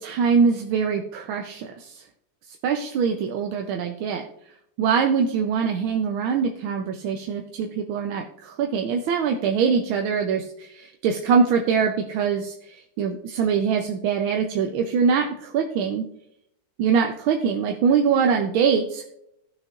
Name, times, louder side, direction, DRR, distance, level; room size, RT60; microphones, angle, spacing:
voice 1, 0.0-1.9 2.6-4.2 4.8-12.5 13.0-16.0 16.8-19.0, right 6 dB, 90° right, 3 dB, 1.6 m, -23 dB
16.0 x 6.3 x 2.4 m, 0.76 s
omnidirectional pair, 2.2 m